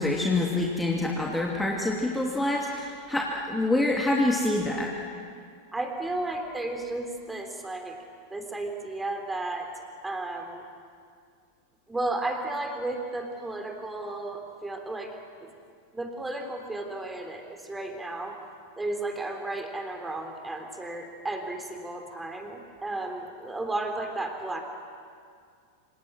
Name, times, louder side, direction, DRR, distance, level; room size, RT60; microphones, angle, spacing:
voice 1, 0.0-4.9, left 2 dB, 5° left, -1 dB, 2.8 m, -26 dB
voice 2, 5.7-8.0 8.3-10.6 11.9-15.5 15.9-18.4 18.8-24.6, right 2 dB, 10° right, 4 dB, 3.5 m, -33 dB
27.5 x 27.5 x 6.2 m, 2.2 s
figure-of-eight pair, 90°, 0 cm